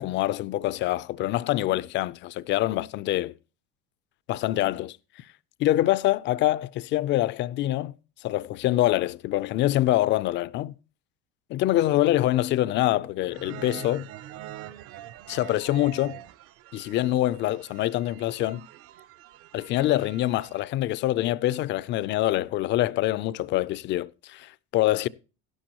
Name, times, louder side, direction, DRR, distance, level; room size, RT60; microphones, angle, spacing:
voice 1, 0.0-3.3 4.3-5.0 5.6-7.9 8.2-10.7 11.5-14.1 15.3-16.2 16.7-18.7 19.5-25.1, left 15 dB, 40° left, 0.4 m, -25 dB
sound 1, 13.3-20.6, right 13 dB, 50° right, 0.6 m, -45 dB
12.5 x 11.5 x 2.9 m
cardioid pair, 150°, 31 cm